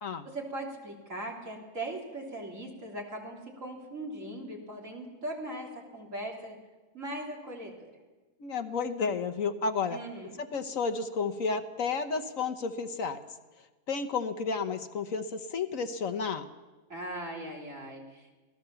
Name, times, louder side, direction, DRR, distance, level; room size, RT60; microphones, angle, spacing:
voice 1, 0.2-6.6 6.9-7.9 9.9-10.4 16.9-18.4, right 1 dB, 55° right, -1 dB, 3.8 m, -39 dB
voice 2, 8.4-10.0 10.4-13.2 13.9-16.5, left 5 dB, 65° left, 8 dB, 1.4 m, -32 dB
26.0 x 17.5 x 6.9 m, 1.2 s
omnidirectional pair, 1.6 m